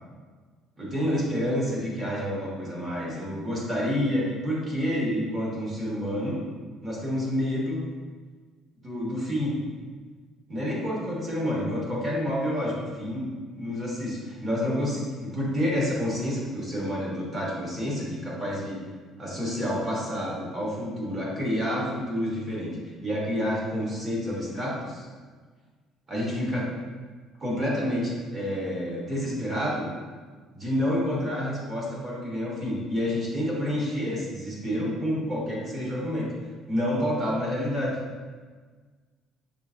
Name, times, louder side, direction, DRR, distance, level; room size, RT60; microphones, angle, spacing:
voice 1, 0.8-6.4 6.8-7.8 8.8-9.6 10.5-18.8 19.2-22.8 23.0-25.1 26.1-26.7 27.4-29.9 30.5-36.3 36.7-38.0, equal, 25° right, -5 dB, 1.2 m, -29 dB
5.5 x 3.2 x 2.5 m, 1.5 s
cardioid pair, 150°, 0 cm